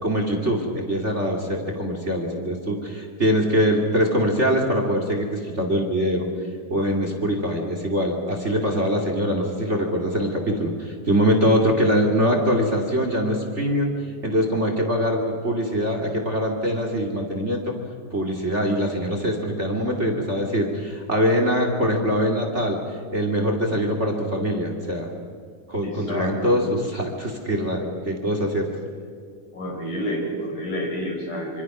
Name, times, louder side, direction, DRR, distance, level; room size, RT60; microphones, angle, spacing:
voice 1, 0.0-6.2 6.7-14.0 14.2-17.7 18.1-22.8 23.1-25.1 25.7-28.7, equal, 25° right, 3 dB, 2.2 m, -23 dB
voice 2, 25.8-26.6 29.5-31.6, equal, 70° left, 0 dB, 6.9 m, -29 dB
26.0 x 25.5 x 6.1 m, 2.2 s
omnidirectional pair, 3.8 m